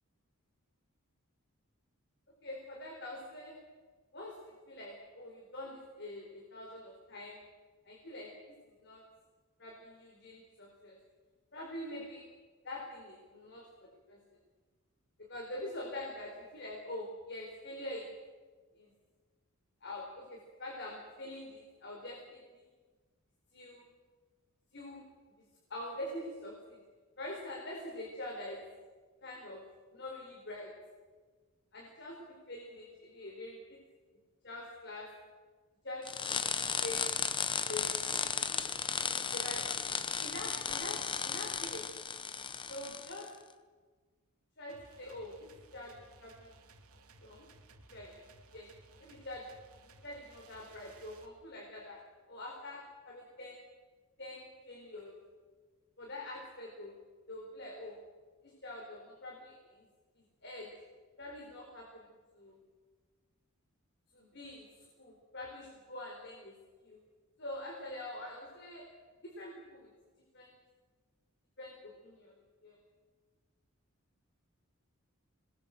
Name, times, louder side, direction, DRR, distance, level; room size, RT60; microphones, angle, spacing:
voice 1, 2.4-3.6 4.1-7.4 7.9-8.3 8.8-9.0 9.6-11.0 11.5-12.3 12.6-14.2 15.2-18.1 18.7-18.9 19.8-22.6 23.5-23.9 24.7-25.1 25.4-26.8 27.2-28.6 29.2-29.6 29.9-30.7 31.7-33.8 34.4-35.1 35.8-36.4 36.8-37.2 37.7-38.0 39.3-39.6 40.1-41.9 42.7-43.3 44.6-46.5 47.2-47.4 47.9-48.1 48.5-48.7 49.0-49.5 49.8-52.0 52.3-53.6 54.2-55.2 56.0-56.9 57.3-58.0 58.4-59.9 60.2-60.7 61.2-62.0 62.3-62.6 64.1-66.6 66.8-67.0 67.4-68.9 69.2-69.9 70.3-70.6 71.6-72.3 72.6-72.8, left 1 dB, 50° left, -1 dB, 4.4 m, -45 dB
sound 1, 36.1-43.3, left 6 dB, 20° left, 0.9 m, -35 dB
sound 2, 44.7-51.3, right 3 dB, 85° right, 2.6 m, -59 dB
27.0 x 21.0 x 7.7 m, 1.4 s
head